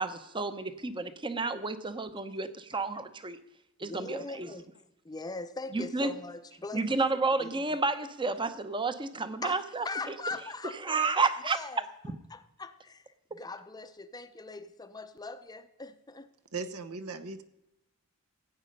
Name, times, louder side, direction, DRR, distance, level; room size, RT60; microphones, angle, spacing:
voice 1, 0.0-3.4 3.8-4.5 5.7-6.1 6.7-10.1 10.8-11.6, right 3 dB, 20° right, 12 dB, 0.8 m, -31 dB
voice 2, 3.8-4.7 5.0-7.0 7.4-7.6 9.4-11.9 12.3-13.1 13.3-16.3, left 3 dB, 20° left, 11 dB, 0.6 m, -41 dB
voice 3, 16.5-17.4, right 4 dB, 70° right, 9 dB, 1.0 m, -38 dB
16.0 x 8.7 x 5.4 m, 0.90 s
head